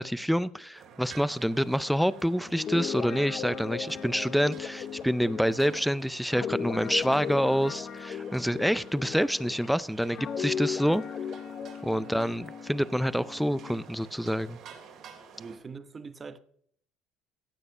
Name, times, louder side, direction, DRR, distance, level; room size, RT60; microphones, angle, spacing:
voice 1, 0.0-11.0 11.8-14.6, equal, ahead, 0.5 m, -27 dB
sound 1, 0.7-15.6, right 6 dB, 55° right, 3.2 m, -51 dB
Guitar, 2.5-9.7 10.1-13.8, left 7 dB, 45° left, 0.8 m, -37 dB
voice 2, 12.0-12.3 15.4-16.4, right 5 dB, 25° right, 0.9 m, -43 dB
16.5 x 7.8 x 5.5 m
cardioid pair, 110°, 0 cm